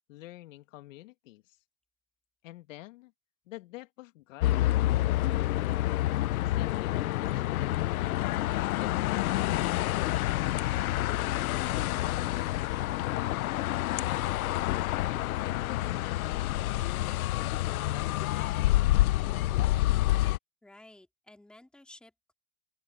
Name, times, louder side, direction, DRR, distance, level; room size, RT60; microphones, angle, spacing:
voice 1, 0.0-1.4 2.4-3.1 3.5-5.8 6.3-9.3 10.5-13.7 14.0-16.5 16.9-18.7, left 17 dB, 65° left, 2.7 m, -48 dB
sound 1, 4.4-20.4, left 16 dB, 90° left, 0.8 m, -28 dB
voice 2, 20.6-22.3, left 1 dB, ahead, 2.4 m, -54 dB
open air
supercardioid pair, 160°, 41 cm